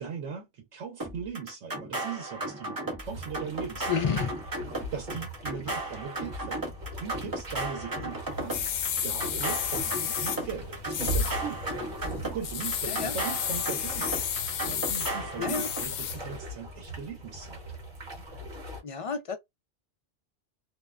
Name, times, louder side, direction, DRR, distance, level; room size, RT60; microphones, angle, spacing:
voice 1, 0.0-4.3 4.9-8.6 9.0-11.6 12.2-14.3 14.7-17.6, right 6 dB, 90° right, 1.0 m, -39 dB
sound 1, 1.0-15.8, right 2 dB, 25° right, 0.5 m, -35 dB
sound 2, 3.0-18.8, equal, 45° right, 1.1 m, -40 dB
voice 2, 3.9-4.3 8.0-8.1 12.9-13.2 15.4-15.7 18.8-19.4, left 6 dB, 60° left, 0.3 m, -30 dB
sound 3, 8.3-16.4, left 8 dB, 75° left, 0.8 m, -33 dB
2.6 x 2.1 x 2.3 m
omnidirectional pair, 1.2 m